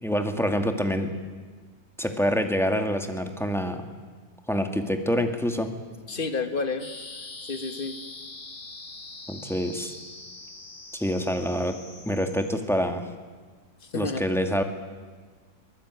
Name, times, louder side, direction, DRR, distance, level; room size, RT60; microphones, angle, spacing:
voice 1, 0.0-1.1 2.0-3.9 4.5-5.7 9.3-10.0 10.9-11.8 12.0-13.1 13.9-14.6, equal, ahead, 5 dB, 1.9 m, -26 dB
voice 2, 6.1-6.9 7.4-8.0 13.9-14.2, left 4 dB, 30° left, 8 dB, 1.7 m, -30 dB
sound 1, 6.8-12.6, left 3 dB, 60° left, 4.1 m, -43 dB
23.0 x 20.5 x 9.6 m, 1.5 s
omnidirectional pair, 2.0 m